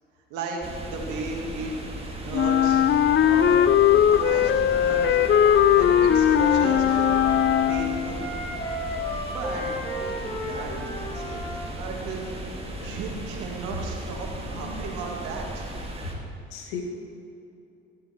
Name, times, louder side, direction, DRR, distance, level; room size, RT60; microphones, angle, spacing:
voice 1, 0.3-0.6 0.9-1.7 2.2-2.8 3.2-3.8 4.0-5.2 5.8-7.1 7.7-8.2 9.3-12.2 12.8-15.7, right 3 dB, 75° right, 0 dB, 2.3 m, -35 dB
sound 1, 0.6-16.1, right 1 dB, 20° right, 2.2 m, -36 dB
Wind instrument woodwind instrument, 2.3-8.1, left 10 dB, 40° left, 0.5 m, -19 dB
Wind instrument woodwind instrument 2, 4.6-11.7, left 1 dB, 15° left, 3.2 m, -33 dB
voice 2, 16.5-16.8, left 6 dB, 80° left, 2 dB, 1.8 m, -37 dB
15.5 x 9.1 x 4.5 m, 2.7 s
hypercardioid pair, 60°, 30 cm